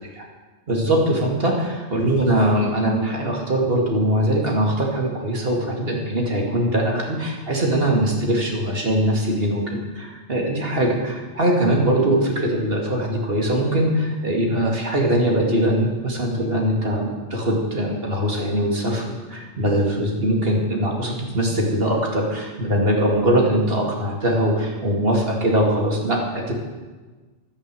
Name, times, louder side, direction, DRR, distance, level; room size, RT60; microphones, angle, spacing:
voice 1, 0.7-26.5, right 1 dB, 45° right, 0 dB, 2.6 m, -21 dB
11.0 x 9.7 x 7.8 m, 1.3 s
omnidirectional pair, 1.4 m